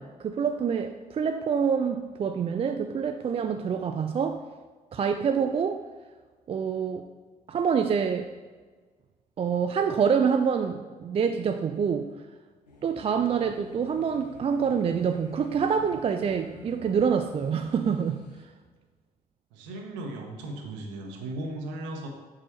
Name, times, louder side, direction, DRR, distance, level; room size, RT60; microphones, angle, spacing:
voice 1, 0.0-4.4 4.9-5.8 6.5-7.1 7.5-8.3 9.4-12.1 12.8-18.3, right 6 dB, 30° right, 6 dB, 0.4 m, -26 dB
sound 1, 12.7-18.4, left 3 dB, 85° left, 0.6 m, -49 dB
voice 2, 19.5-22.1, right 2 dB, 65° right, 3 dB, 1.1 m, -36 dB
7.5 x 6.1 x 2.9 m, 1.4 s
figure-of-eight pair, 45°, 20 cm